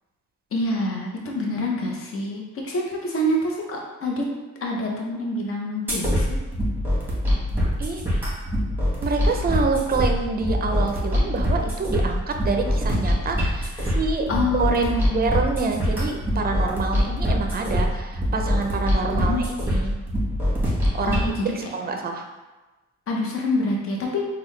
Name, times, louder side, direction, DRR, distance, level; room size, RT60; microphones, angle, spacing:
voice 1, 0.5-4.3 4.6-6.4 13.8-14.0 14.3-15.3 19.1-19.4 21.0-21.7 23.1-24.2, left 1 dB, 45° left, -1 dB, 0.9 m, -26 dB
sound 1, 5.9-21.3, equal, 5° right, 1.5 m, -24 dB
voice 2, 9.0-19.9 20.9-22.3, right 4 dB, 30° right, 4 dB, 0.5 m, -27 dB
3.7 x 2.3 x 3.2 m, 1.1 s
cardioid pair, 90°, 30 cm